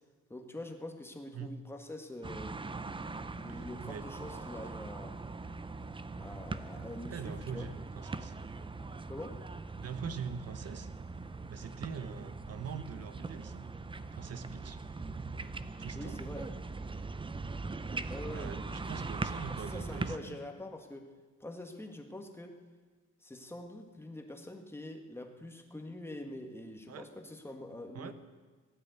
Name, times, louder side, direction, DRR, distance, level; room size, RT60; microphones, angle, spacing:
voice 1, 0.3-2.6 3.0-5.2 6.2-7.7 9.1-9.4 16.0-16.5 18.1-18.9 19.1-19.2 19.7-21.1 21.4-22.6 23.2-28.1, left 1 dB, 10° left, 3 dB, 1.8 m, -45 dB
sound 1, 2.2-20.2, right 3 dB, 15° right, 0.7 m, -41 dB
voice 2, 3.5-4.0 6.8-8.3 9.8-10.9 11.5-13.6 14.1-14.8 15.8-16.2 18.3-20.4 26.9-27.1 27.9-28.1, right 6 dB, 55° right, 11 dB, 1.2 m, -43 dB
16.0 x 9.9 x 8.2 m, 1.4 s
cardioid pair, 90°, 30 cm